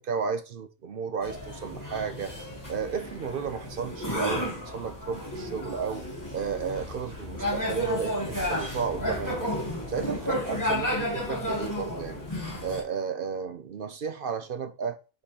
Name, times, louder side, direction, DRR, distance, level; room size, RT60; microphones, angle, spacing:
voice 1, 0.0-2.3 2.7-9.5 9.9-12.3 12.6-15.0, right 6 dB, 55° right, 0.7 m, -33 dB
sound 1, 1.2-12.8, left 1 dB, 15° left, 2.3 m, -32 dB
5.3 x 5.2 x 4.2 m
omnidirectional pair, 1.3 m